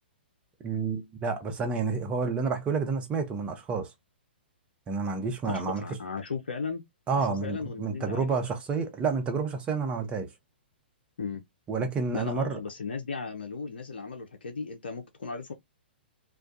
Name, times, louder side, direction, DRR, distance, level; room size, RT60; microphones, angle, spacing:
voice 1, 0.6-3.9 4.9-5.8 7.1-10.3 11.7-12.6, right 4 dB, 20° right, 0.7 m, -29 dB
voice 2, 5.5-6.8 7.1-8.3 11.2-11.4 12.1-15.5, left 4 dB, 70° left, 0.5 m, -36 dB
2.3 x 2.2 x 2.6 m
figure-of-eight pair, 115°, 6 cm